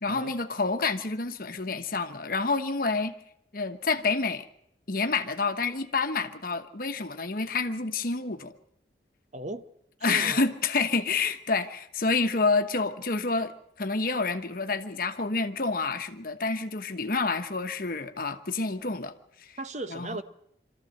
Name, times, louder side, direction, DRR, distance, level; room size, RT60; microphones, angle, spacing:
voice 1, 0.0-3.1 3.5-4.4 4.9-8.5 10.0-19.1 19.4-19.6 19.9-20.2, left 4 dB, 55° left, 1.2 m, -28 dB
voice 2, 9.3-9.6 10.1-10.4 19.6-20.2, right 2 dB, 40° right, 0.9 m, -36 dB
24.5 x 13.5 x 7.8 m
head